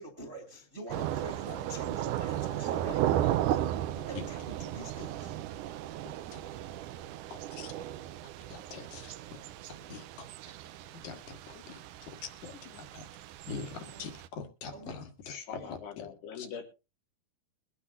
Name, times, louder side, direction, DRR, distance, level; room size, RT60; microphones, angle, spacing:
voice 1, 0.0-5.4 13.8-14.0 14.7-15.0 15.5-15.7, right 1 dB, 20° right, 5 dB, 1.7 m, -46 dB
Thunder / Rain, 0.9-14.3, right 12 dB, 85° right, 1.8 m, -35 dB
voice 2, 6.1-6.4 7.3-7.7 8.5-9.1 9.8-10.3 11.0-13.1 13.5-15.4 15.7-16.1 16.4-16.5, left 5 dB, 60° left, 7 dB, 2.7 m, -44 dB
voice 3, 15.3-16.6, left 7 dB, 85° left, 3 dB, 4.4 m, -42 dB
22.5 x 9.8 x 2.6 m, 0.29 s
omnidirectional pair, 4.5 m